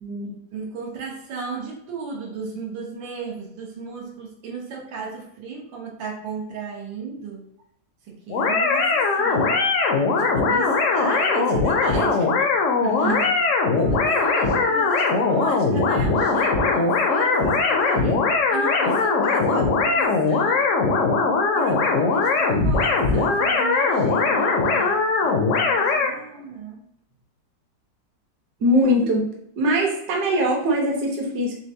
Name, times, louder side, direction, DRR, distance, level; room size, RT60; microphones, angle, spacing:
voice 1, 0.0-0.3 12.8-13.3 28.6-29.3 29.6-31.6, equal, 65° right, 0 dB, 1.4 m, -22 dB
voice 2, 0.5-7.5 8.1-12.5 12.9-13.4 13.8-20.8 21.6-26.8, right 5 dB, 85° right, -2 dB, 1.7 m, -35 dB
sound 1, 8.3-26.1, left 4 dB, 70° left, 0.7 m, -20 dB
4.3 x 3.4 x 2.7 m, 0.72 s
omnidirectional pair, 2.0 m